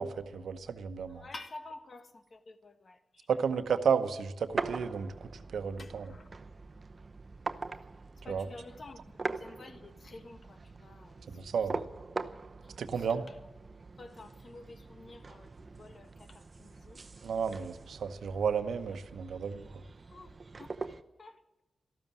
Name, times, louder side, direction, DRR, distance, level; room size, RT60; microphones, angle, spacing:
voice 1, 0.0-1.2 3.3-6.1 8.3-8.5 11.3-11.8 12.8-13.2 17.2-19.6, right 6 dB, 85° right, 1.0 m, -32 dB
voice 2, 1.1-3.3 5.8-6.3 8.2-11.2 12.6-13.4 14.0-17.0 20.1-21.6, left 2 dB, 55° left, 1.5 m, -50 dB
sound 1, 4.5-21.0, right 3 dB, 45° right, 0.8 m, -43 dB
13.5 x 12.5 x 7.5 m
cardioid pair, 60°, 0 cm